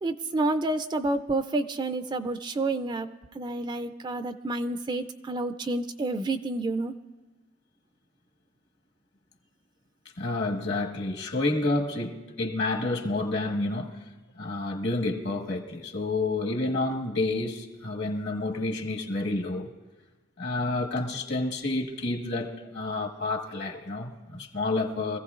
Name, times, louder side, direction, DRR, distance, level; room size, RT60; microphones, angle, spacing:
voice 1, 0.0-3.1 3.3-6.9, right 2 dB, 25° right, 0.3 m, -29 dB
voice 2, 10.2-14.0 14.4-19.7 20.4-25.2, left 2 dB, 65° left, 1.4 m, -29 dB
24.5 x 15.0 x 2.4 m
head